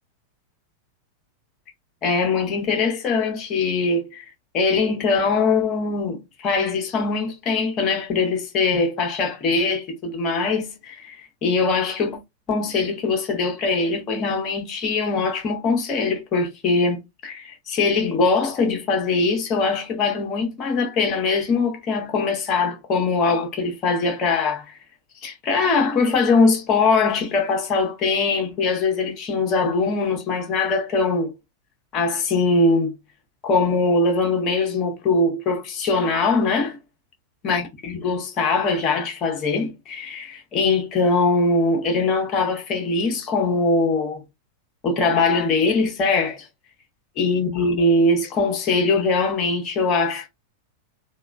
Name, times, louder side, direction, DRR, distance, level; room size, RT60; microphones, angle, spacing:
voice 1, 2.0-4.2 4.5-12.2 12.5-24.7 25.2-31.3 31.9-32.9 33.4-36.8 37.4-44.2 44.8-46.5 47.2-50.3, left 3 dB, 35° left, 1.0 m, -22 dB
3.4 x 2.4 x 2.2 m
figure-of-eight pair, 90°, 0 cm